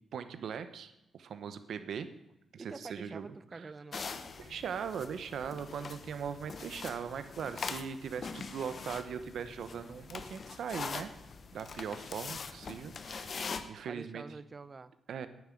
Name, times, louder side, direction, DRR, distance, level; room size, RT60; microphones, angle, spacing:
voice 1, 0.1-2.1 2.5-3.3 3.5-3.7 4.4-11.1 11.5-14.2 15.1-15.3, right 7 dB, 75° right, 11 dB, 1.0 m, -40 dB
voice 2, 2.6-4.1 13.9-14.9, right 4 dB, 35° right, 15 dB, 0.7 m, -46 dB
sound 1, 3.9-13.6, left 5 dB, 50° left, 1.0 m, -43 dB
9.4 x 9.1 x 7.6 m, 0.91 s
cardioid pair, 85°, 0 cm